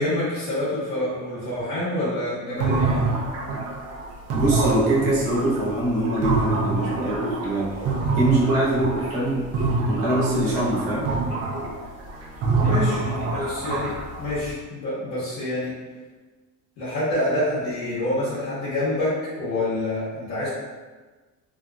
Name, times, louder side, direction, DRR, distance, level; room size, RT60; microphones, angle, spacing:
voice 1, 0.0-3.0 12.6-15.8 16.8-20.5, left 1 dB, 75° left, -10 dB, 1.2 m, -27 dB
sound 1, 2.6-9.3 9.5-14.5, right 3 dB, 50° right, 0.6 m, -25 dB
voice 2, 4.3-7.8 8.1-9.5 9.8-11.1, right 1 dB, 90° right, -6 dB, 1.0 m, -23 dB
2.9 x 2.5 x 2.2 m, 1.3 s
cardioid pair, 160°, 31 cm